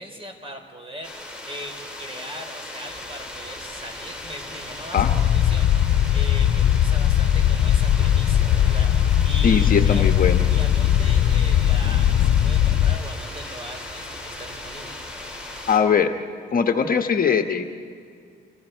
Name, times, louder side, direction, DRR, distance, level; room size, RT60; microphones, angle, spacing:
voice 1, 0.0-10.1 10.5-15.0, equal, 30° right, 4 dB, 4.3 m, -39 dB
sound 1, 1.0-15.8, left 1 dB, 5° right, 5.3 m, -37 dB
sound 2, 5.0-13.0, left 10 dB, 75° left, 0.9 m, -19 dB
voice 2, 9.4-10.4 15.7-16.1 16.5-17.6, left 6 dB, 45° left, 5 dB, 1.3 m, -20 dB
30.0 x 24.5 x 4.6 m, 2.3 s
cardioid pair, 90°, 20 cm